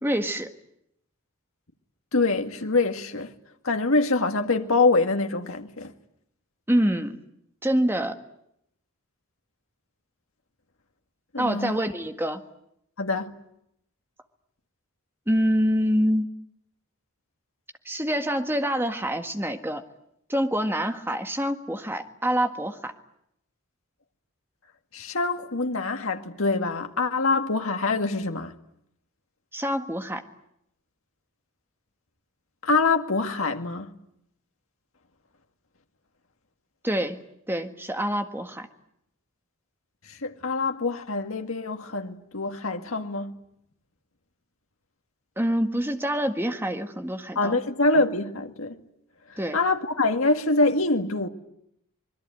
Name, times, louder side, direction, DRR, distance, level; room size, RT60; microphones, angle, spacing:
voice 1, 0.0-0.5 6.7-7.2 7.6-8.2 11.4-12.4 15.3-16.3 17.9-19.8 20.3-22.9 29.5-30.2 36.8-38.7 45.4-47.6 49.4-49.6, equal, 10° right, 1.7 m, -26 dB
voice 2, 2.1-3.3 3.6-5.9 11.3-11.8 13.0-13.3 24.9-28.5 32.6-33.9 40.1-43.3 47.4-48.8 49.5-51.3, left 3 dB, 75° left, 2.1 m, -25 dB
26.0 x 21.5 x 9.2 m
head